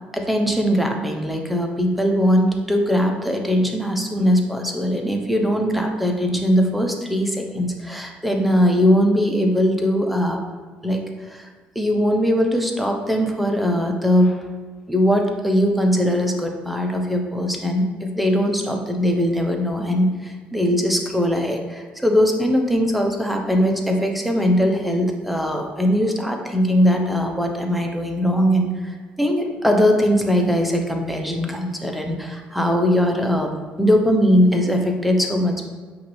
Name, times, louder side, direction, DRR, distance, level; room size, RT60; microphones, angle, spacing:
voice 1, 0.1-10.4 10.8-11.5 11.8-14.4 14.9-33.5 33.8-35.7, equal, ahead, 2 dB, 0.7 m, -20 dB
5.7 x 2.6 x 3.2 m, 1.5 s
supercardioid pair, 80°, 4 cm